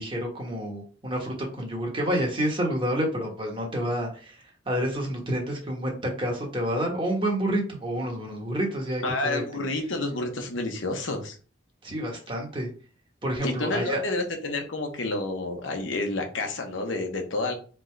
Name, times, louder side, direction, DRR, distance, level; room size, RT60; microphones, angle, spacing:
voice 1, 0.0-9.4 11.8-12.7 13.2-14.0, equal, 25° right, 0 dB, 1.2 m, -29 dB
voice 2, 9.0-11.4 13.4-17.5, left 2 dB, 85° left, 3 dB, 1.0 m, -29 dB
3.9 x 3.4 x 3.3 m, 0.39 s
head